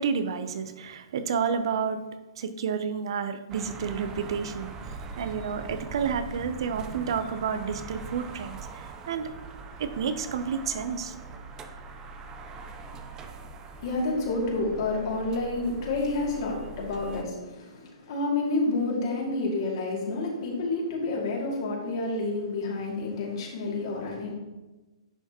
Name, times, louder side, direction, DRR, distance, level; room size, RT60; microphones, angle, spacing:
voice 1, 0.0-2.0 2.4-9.3 9.8-11.1, right 6 dB, 60° right, 10 dB, 0.7 m, -30 dB
sound 1, 3.5-17.2, right 4 dB, 20° right, 0.6 m, -42 dB
voice 2, 13.7-24.4, left 2 dB, 55° left, -2 dB, 2.5 m, -29 dB
10.0 x 5.6 x 3.0 m, 1.1 s
hypercardioid pair, 125°, 3 cm